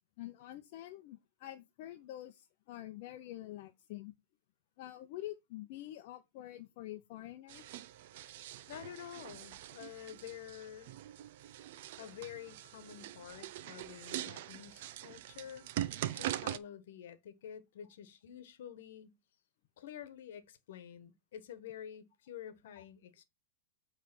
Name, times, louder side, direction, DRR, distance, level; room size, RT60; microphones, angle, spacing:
voice 1, 0.2-4.1 4.8-7.7 22.8-22.9, left 14 dB, 55° left, 0.7 m, -47 dB
sound 1, 7.5-16.6, right 13 dB, 60° right, 0.6 m, -43 dB
voice 2, 8.7-11.0 12.0-15.7 16.0-19.2 19.8-23.2, left 10 dB, 70° left, 1.2 m, -49 dB
8.7 x 3.3 x 6.0 m
hypercardioid pair, 135°, 0 cm